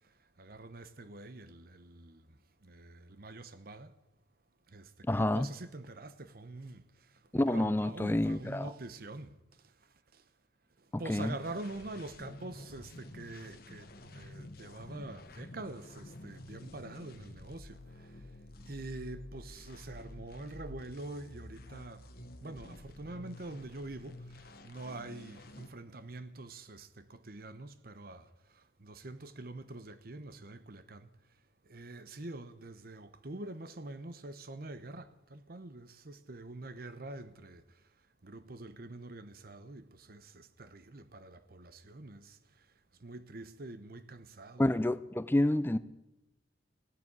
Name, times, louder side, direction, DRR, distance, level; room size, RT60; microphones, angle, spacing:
voice 1, 0.4-2.4 2.6-3.9 4.7-7.1 7.4-9.3 10.1-10.2 10.8-18.1 18.6-31.1 31.6-37.7 38.2-42.4 43.0-44.8 45.5-45.6, right 2 dB, 55° right, 0.9 m, -45 dB
voice 2, 5.1-5.5 7.3-8.7 10.9-11.3 44.6-45.8, left 1 dB, 10° left, 0.4 m, -28 dB
sound 1, 11.1-25.7, left 1 dB, 55° left, 1.1 m, -50 dB
16.5 x 7.7 x 9.8 m
head